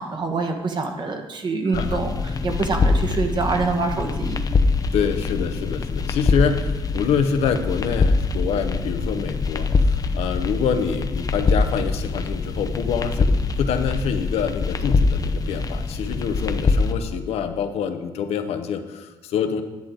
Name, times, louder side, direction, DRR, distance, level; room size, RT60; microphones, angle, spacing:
voice 1, 0.0-4.4, right 3 dB, 45° right, 4 dB, 1.5 m, -25 dB
sound 1, 1.7-16.9, left 3 dB, 35° left, 0.7 m, -23 dB
voice 2, 4.9-19.6, left 7 dB, 75° left, 7 dB, 0.9 m, -26 dB
10.5 x 8.2 x 3.9 m, 1.2 s
supercardioid pair, 75°, 11 cm